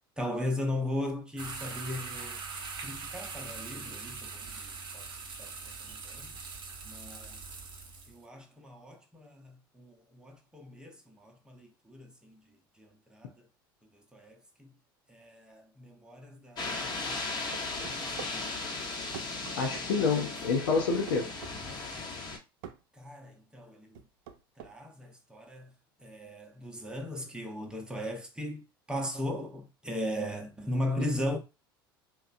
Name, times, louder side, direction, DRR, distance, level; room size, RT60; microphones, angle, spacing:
voice 1, 0.2-2.4 2.8-5.1 5.4-6.3 6.8-7.4 8.1-13.5 13.9-14.7 15.1-17.6 18.0-18.9 19.3-19.9 22.9-24.0 24.6-25.7 26.0-31.4, left 1 dB, 5° right, 0.8 m, -38 dB
sound 1, 1.4-8.2, right 4 dB, 40° right, 0.8 m, -42 dB
sound 2, 16.6-22.4, left 3 dB, 35° left, 0.9 m, -37 dB
sound 3, 17.5-18.4 19.1-19.9 21.1-21.6 22.6-22.8 23.9-24.7, right 9 dB, 65° right, 0.4 m, -44 dB
voice 2, 19.6-21.3, left 4 dB, 70° left, 0.6 m, -28 dB
2.9 x 2.2 x 2.5 m
figure-of-eight pair, 75°, 12 cm